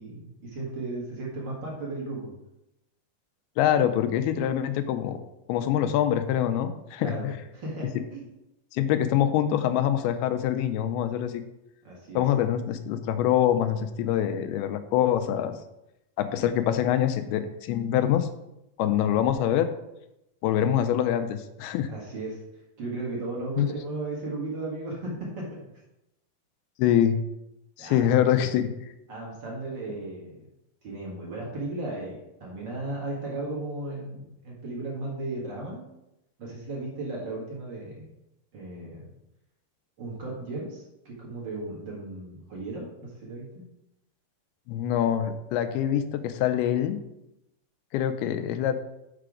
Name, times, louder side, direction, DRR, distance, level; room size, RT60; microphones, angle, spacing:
voice 1, 0.0-2.3 7.0-7.3 7.5-8.2 11.8-12.2 21.9-22.4 22.8-25.6 27.8-28.1 29.1-30.4 30.8-35.8 36.4-38.1 38.5-39.1 40.0-43.6, right 2 dB, 50° right, -3 dB, 1.4 m, -35 dB
voice 2, 3.6-5.2 5.5-7.3 8.7-11.4 12.2-15.5 16.2-18.3 18.8-19.7 20.4-21.9 23.6-23.7 26.8-27.2 27.8-28.9 44.7-47.0 47.9-48.7, left 10 dB, 85° left, 9 dB, 2.5 m, -25 dB
6.7 x 4.9 x 4.9 m, 0.88 s
omnidirectional pair, 4.5 m